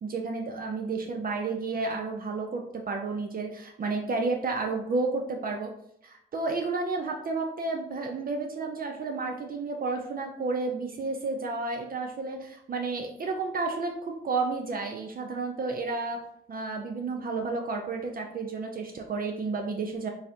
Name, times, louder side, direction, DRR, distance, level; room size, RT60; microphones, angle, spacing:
voice 1, 0.0-5.7 6.0-16.2 16.5-20.1, right 3 dB, 45° right, 2 dB, 0.5 m, -31 dB
3.9 x 2.6 x 2.7 m, 0.72 s
hypercardioid pair, 40°, 20 cm